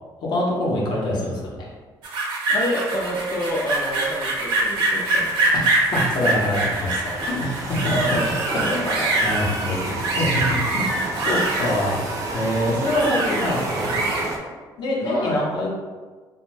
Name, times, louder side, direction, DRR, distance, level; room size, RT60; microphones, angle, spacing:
voice 1, 0.3-1.7 5.5-7.8 8.5-8.9 9.2-12.0 12.3-14.0 14.8-15.7, left 1 dB, 65° left, -3 dB, 0.7 m, -25 dB
sound 1, 2.0-14.3, right 2 dB, 85° right, 0.7 m, -24 dB
voice 2, 2.5-5.3 7.9-9.2 15.0-15.5, equal, 35° left, -3 dB, 0.3 m, -27 dB
sound 2, 2.9-14.4, right 2 dB, 40° right, 0.4 m, -32 dB
2.5 x 2.1 x 3.1 m, 1.4 s
cardioid pair, 145°, 8 cm